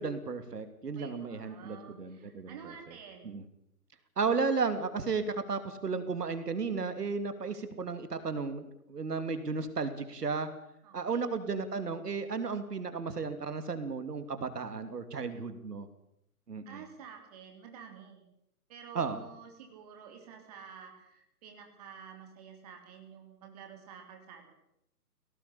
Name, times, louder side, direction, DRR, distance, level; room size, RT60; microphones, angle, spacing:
voice 1, 0.0-2.7 3.2-3.4 4.2-10.5 10.9-15.9 16.5-16.8 18.9-19.2, right 4 dB, 80° right, 9 dB, 3.1 m, -34 dB
voice 2, 1.0-3.4 10.8-11.3 16.7-18.3 18.7-24.5, right 7 dB, 25° right, 3 dB, 3.5 m, -50 dB
20.0 x 18.0 x 8.6 m, 0.77 s
hypercardioid pair, 165°, 46 cm